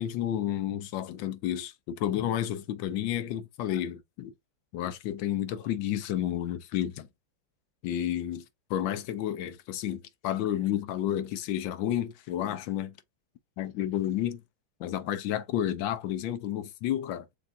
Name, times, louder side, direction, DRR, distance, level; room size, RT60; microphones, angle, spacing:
voice 1, 0.0-4.3 4.7-7.1 7.8-8.4 8.7-12.9 13.6-14.4 14.8-17.3, left 11 dB, 70° left, 1.3 m, -31 dB
6.9 x 2.4 x 2.6 m
omnidirectional pair, 2.3 m